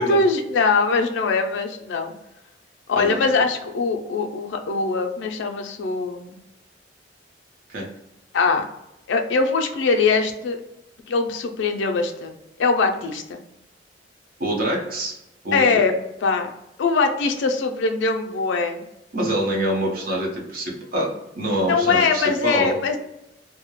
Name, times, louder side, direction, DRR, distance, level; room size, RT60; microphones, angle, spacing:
voice 1, 0.0-2.1 2.9-6.4 8.3-8.6 9.1-10.6 11.1-13.4 15.5-15.9 16.2-16.5 16.8-18.8 21.7-23.0, left 4 dB, 70° left, 5 dB, 0.4 m, -22 dB
voice 2, 3.0-3.3 7.7-7.9 14.4-15.2 15.4-15.6 19.1-21.1 21.3-22.8, right 1 dB, 50° right, -1 dB, 0.7 m, -25 dB
2.2 x 2.0 x 2.9 m, 0.86 s
head